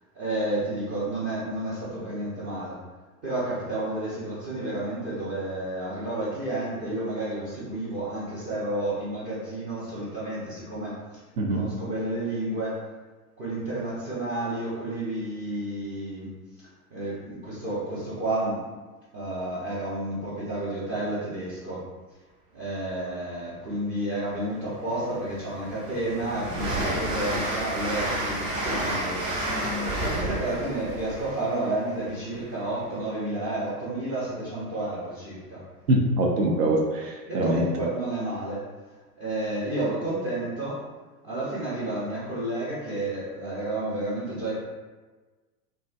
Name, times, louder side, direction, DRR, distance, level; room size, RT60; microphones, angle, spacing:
voice 1, 0.1-2.8 3.2-11.2 11.5-12.8 13.4-16.3 16.9-18.7 19.1-21.9 22.5-29.3 30.0-35.6 37.3-38.6 39.2-40.8 41.2-44.5, right 1 dB, 20° right, -8 dB, 0.3 m, -31 dB
Train, 24.4-24.5 25.0-32.7, right 1 dB, 50° right, 0.9 m, -31 dB
voice 2, 35.9-37.7, right 1 dB, 80° right, 0 dB, 0.6 m, -23 dB
2.6 x 2.1 x 2.3 m, 1.3 s
figure-of-eight pair, 90°, 47 cm